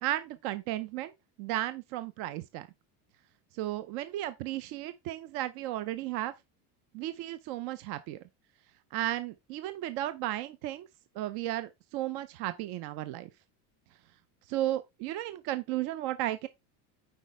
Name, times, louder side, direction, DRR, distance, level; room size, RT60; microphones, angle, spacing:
voice 1, 0.0-1.1 1.4-2.7 3.5-6.3 6.9-8.2 8.9-10.9 11.2-13.3 14.5-16.5, right 14 dB, 60° right, 0.7 m, -34 dB
8.2 x 5.2 x 3.3 m
cardioid pair, 145°, 45 cm